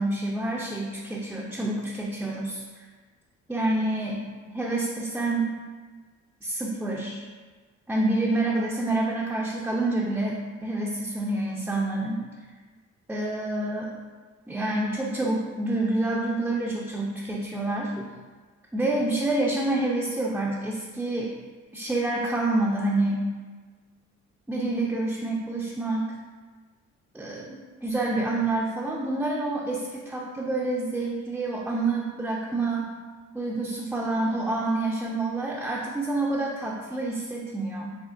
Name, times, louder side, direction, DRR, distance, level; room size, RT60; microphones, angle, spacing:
voice 1, 0.0-2.6 3.5-4.2 4.5-5.6 6.4-7.2 7.9-12.3 13.1-13.9 14.5-18.1 18.7-21.3 21.7-23.3 24.5-26.1 27.1-32.9 33.3-37.9, right 2 dB, 5° right, -3 dB, 0.4 m, -27 dB
6.1 x 2.1 x 2.4 m, 1.4 s
cardioid pair, 90°, 30 cm